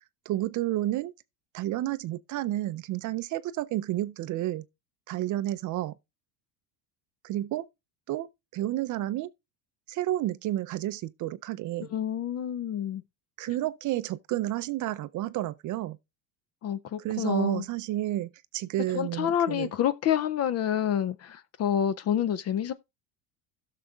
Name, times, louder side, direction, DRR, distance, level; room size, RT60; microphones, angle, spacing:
voice 1, 0.3-1.1 1.5-4.6 5.1-5.9 7.2-7.7 8.1-9.3 9.9-11.9 13.4-16.0 17.0-19.7, right 14 dB, 40° right, 0.4 m, -31 dB
voice 2, 11.9-13.0 16.6-17.6 18.9-22.7, left 9 dB, 35° left, 0.4 m, -28 dB
16.0 x 6.5 x 2.3 m
supercardioid pair, 105°, 50 cm